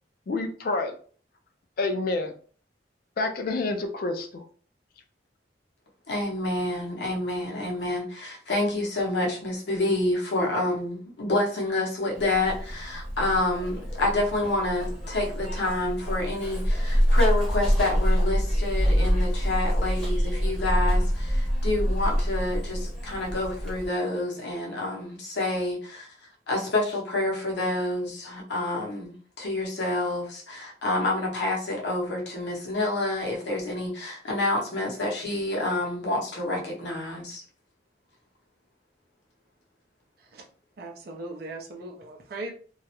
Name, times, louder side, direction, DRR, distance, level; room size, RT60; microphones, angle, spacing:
voice 1, 0.3-0.9 1.8-2.3 3.2-4.5, left 3 dB, 55° left, 6 dB, 0.3 m, -28 dB
voice 2, 6.1-26.1 26.5-37.4, left 2 dB, 70° left, -1 dB, 0.7 m, -28 dB
Zipper (clothing), 12.1-23.9, equal, 5° left, 1.0 m, -26 dB
voice 3, 40.8-42.5, right 2 dB, 55° right, 1 dB, 0.5 m, -38 dB
2.3 x 2.0 x 2.8 m, 0.44 s
head